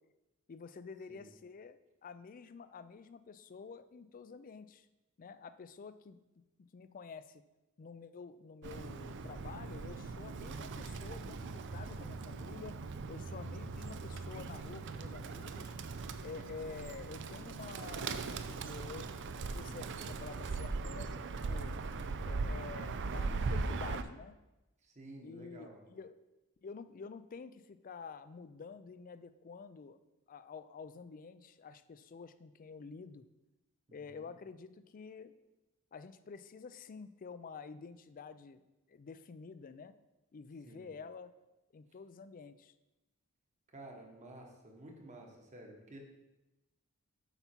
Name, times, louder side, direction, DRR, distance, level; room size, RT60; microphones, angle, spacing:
voice 1, 0.5-4.9 5.2-6.2 6.6-7.4 7.8-12.8 13.1-15.7 16.2-21.7 22.2-24.4 25.2-26.2 26.6-30.0 30.3-33.2 33.9-35.3 35.9-38.6 38.9-39.9 40.3-41.3 41.7-42.7, left 5 dB, 40° left, 13 dB, 0.4 m, -49 dB
Bird, 8.6-24.0, right 4 dB, 55° right, 0.5 m, -40 dB
voice 2, 24.8-25.8 33.9-34.3 40.7-40.9 41.9-42.0 43.7-46.1, right 1 dB, 35° right, 1 dB, 1.3 m, -52 dB
8.0 x 5.6 x 4.4 m, 1.0 s
head